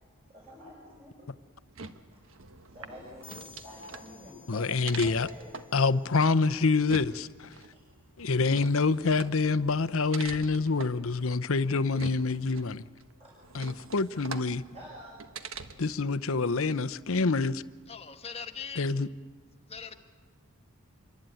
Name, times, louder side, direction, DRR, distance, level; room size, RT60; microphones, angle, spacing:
voice 1, 0.3-1.2 2.1-2.2 2.7-5.6 7.7-7.8 13.2-13.3 14.7-15.2, left 1 dB, 30° right, 6.6 m, -48 dB
sound 1, 1.6-16.0, right 4 dB, 65° right, 1.3 m, -45 dB
sound 2, 3.2-6.8, left 5 dB, 5° left, 1.6 m, -56 dB
voice 2, 4.5-5.3 5.7-7.5 8.2-12.8 13.5-14.6 15.8-17.6 18.8-19.1, left 4 dB, 70° left, 0.8 m, -26 dB
voice 3, 17.9-18.9 19.7-20.0, left 6 dB, 25° left, 1.5 m, -41 dB
27.0 x 23.5 x 9.2 m
head